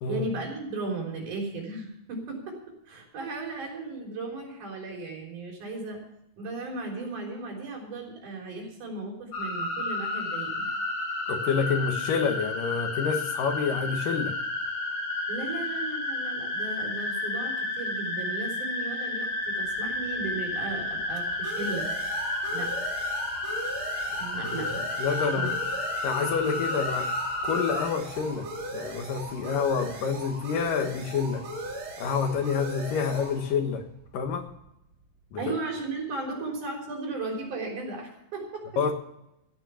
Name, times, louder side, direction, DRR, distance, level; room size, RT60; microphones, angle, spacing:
voice 1, 0.1-6.0 6.4-10.7 15.3-21.9 22.5-22.8 24.2-25.5 35.4-38.9, right 3 dB, 65° right, 0 dB, 5.3 m, -36 dB
sound 1, 9.3-27.8, left 2 dB, 45° left, 3.9 m, -31 dB
voice 2, 11.3-14.4 24.4-24.5 25.0-25.5 26.0-27.1 27.4-28.5 28.7-31.4 32.0-33.8 34.1-34.5 35.3-35.4 38.8-38.9, left 6 dB, 80° left, 6 dB, 3.1 m, -28 dB
sound 2, 19.5-34.9, right 2 dB, 40° right, 3.0 m, -39 dB
15.0 x 9.0 x 7.0 m, 0.82 s
omnidirectional pair, 3.8 m